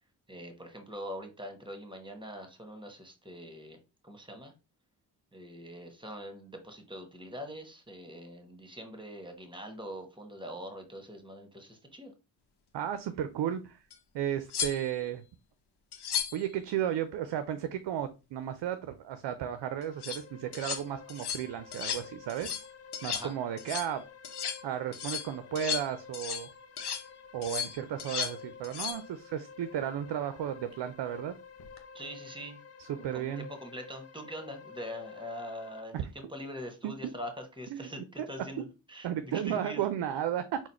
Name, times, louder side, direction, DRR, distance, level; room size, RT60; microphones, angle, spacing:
voice 1, 0.3-3.8 4.0-4.5 5.3-12.1 23.1-23.3 31.9-32.6 32.9-39.8, equal, 10° right, 5 dB, 1.5 m, -43 dB
voice 2, 12.7-13.8 14.1-15.2 16.3-22.5 23.0-24.0 24.6-26.5 27.3-31.3 32.8-33.5 35.9-36.0 36.8-36.9 37.7-37.9 38.2-38.3 38.6-38.7 39.0-40.6, right 10 dB, 65° right, 11 dB, 0.6 m, -34 dB
sound 1, 13.9-14.0 14.5-15.1 15.9-16.5 19.8-20.2 20.5-20.8 21.1-21.4 21.7-22.0 22.3-22.7 22.9-23.3 23.6-23.9 24.2-24.6 24.9-26.5 26.8-27.0 27.4-28.4 28.6-29.0 31.6-31.8, left 8 dB, 60° left, 0.9 m, -35 dB
sound 2, 19.5-35.8, left 6 dB, 35° left, 0.6 m, -51 dB
4.0 x 2.3 x 4.3 m, 0.29 s
hypercardioid pair, 40°, 45 cm